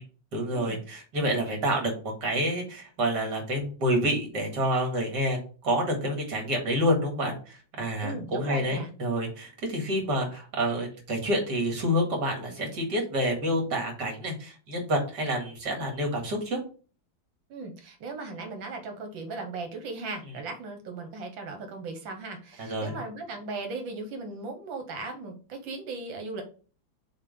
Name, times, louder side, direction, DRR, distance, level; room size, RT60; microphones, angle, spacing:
voice 1, 0.3-5.4 5.6-16.6 22.6-22.9, equal, 60° right, 1 dB, 2.6 m, -28 dB
voice 2, 8.0-8.9 17.5-26.4, right 3 dB, 85° right, 5 dB, 1.9 m, -37 dB
6.7 x 2.9 x 5.3 m, 0.38 s
omnidirectional pair, 2.0 m